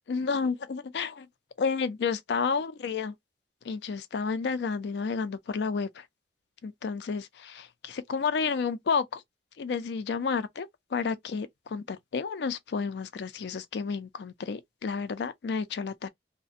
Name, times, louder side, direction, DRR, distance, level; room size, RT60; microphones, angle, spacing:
voice 1, 0.1-1.3 1.6-3.1 3.6-6.0 6.6-9.2 9.6-16.1, left 5 dB, 70° left, 0.4 m, -31 dB
2.4 x 2.1 x 2.5 m
head